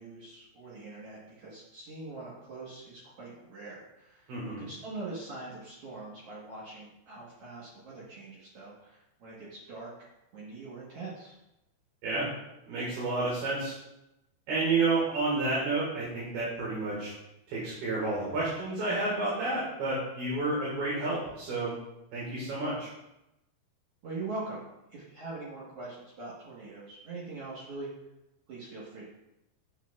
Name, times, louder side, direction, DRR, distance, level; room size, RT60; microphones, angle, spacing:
voice 1, 0.0-9.9 10.3-11.3 24.0-27.9 28.5-29.1, right 3 dB, 90° right, -7 dB, 1.3 m, -43 dB
voice 2, 4.3-4.6 12.0-12.3 12.7-13.7 14.5-17.1 17.5-21.7 22.1-22.9, right 3 dB, 65° right, -7 dB, 3.3 m, -30 dB
9.5 x 6.2 x 2.4 m, 0.91 s
omnidirectional pair, 5.0 m